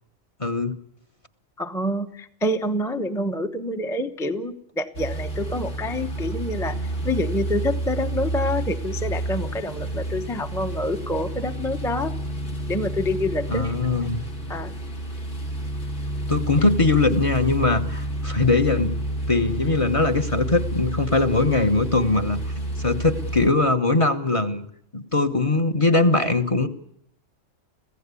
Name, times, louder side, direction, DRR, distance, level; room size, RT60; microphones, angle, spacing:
voice 1, 0.4-0.8 13.5-14.2 16.3-19.0 19.3-22.4 22.8-24.7 24.9-26.7, left 3 dB, 25° left, 10 dB, 1.1 m, -21 dB
voice 2, 1.6-12.1 12.7-13.7 14.5-14.7, left 1 dB, 5° left, 7 dB, 0.8 m, -27 dB
sound 1, 5.0-23.5, right 1 dB, 70° left, 3.0 m, -30 dB
25.5 x 16.0 x 8.4 m, 0.75 s
omnidirectional pair, 1.3 m